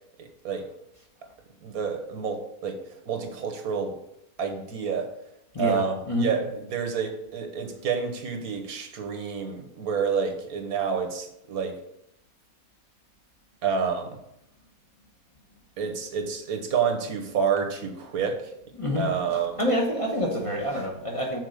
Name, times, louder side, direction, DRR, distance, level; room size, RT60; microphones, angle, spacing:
voice 1, 0.2-0.7 1.6-4.0 4.4-5.1 5.6-11.8 13.6-14.2 15.8-18.5 19.0-19.6, right 6 dB, 85° right, 5 dB, 1.5 m, -29 dB
voice 2, 18.8-19.1 19.6-21.4, left 1 dB, 25° left, 0 dB, 1.0 m, -26 dB
6.5 x 4.2 x 6.5 m, 0.80 s
omnidirectional pair, 1.5 m